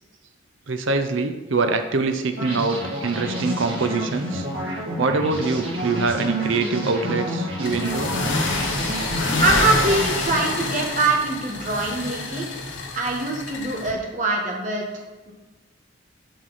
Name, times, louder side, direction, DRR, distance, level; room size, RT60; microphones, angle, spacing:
voice 1, 0.7-4.5 5.0-8.1, right 3 dB, 75° right, 7 dB, 0.6 m, -24 dB
sound 1, 2.4-11.4, equal, 90° right, 2.2 m, -30 dB
sound 2, 7.6-13.9, left 3 dB, 70° left, 1.2 m, -27 dB
voice 2, 9.4-12.5 12.9-15.3, right 3 dB, 40° right, -1 dB, 1.4 m, -23 dB
7.6 x 5.8 x 4.1 m, 1.2 s
head